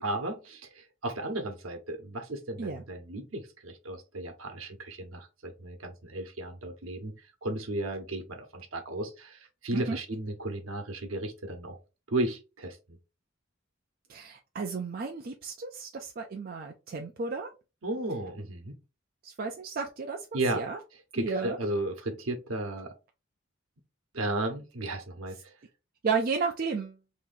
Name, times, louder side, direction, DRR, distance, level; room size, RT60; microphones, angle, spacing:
voice 1, 0.0-11.8 12.1-12.8 17.8-18.8 20.3-20.6 21.1-22.9 24.1-25.5, right 2 dB, 85° right, 0.9 m, -34 dB
voice 2, 14.1-17.5 19.2-20.8 21.2-21.6 26.0-27.0, right 4 dB, 45° right, 0.4 m, -33 dB
2.9 x 2.6 x 3.8 m
head